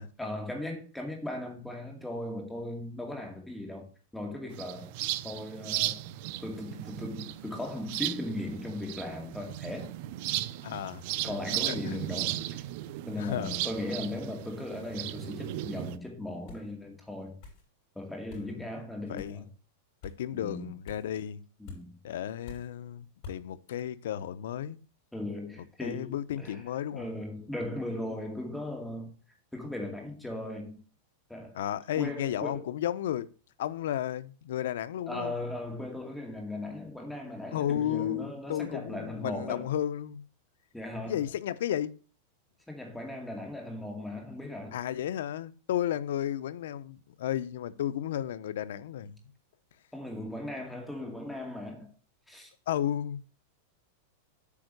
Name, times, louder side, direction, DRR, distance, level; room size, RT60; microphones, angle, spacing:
voice 1, 0.2-3.9 4.1-4.9 5.2-6.1 6.4-10.0 11.2-12.6 13.0-17.3 18.0-19.5 20.3-20.8 21.6-22.0 25.1-26.6 26.9-29.1 29.5-30.8 31.3-31.6 32.0-32.7 35.1-39.6 40.7-41.2 42.7-44.8 49.9-51.9 52.3-52.5, left 1 dB, 5° left, 2.3 m, -38 dB
sound 1, 4.5-16.0, right 15 dB, 50° right, 0.5 m, -36 dB
voice 2, 10.6-11.4 11.7-12.0 13.2-13.6 18.3-18.7 19.1-19.4 20.0-21.4 22.0-24.8 25.8-27.1 31.5-33.3 33.6-35.3 37.5-40.2 41.0-41.9 44.7-49.2 52.7-53.2, left 11 dB, 75° left, 0.7 m, -33 dB
sound 2, 16.5-16.7 17.4-17.7 18.3-18.5 19.2-19.4 20.0-20.2 20.9-21.1 21.7-21.8 22.5-22.7 23.2-23.4, left 4 dB, 45° left, 5.7 m, -46 dB
8.5 x 5.3 x 6.5 m
supercardioid pair, 160°, 0 cm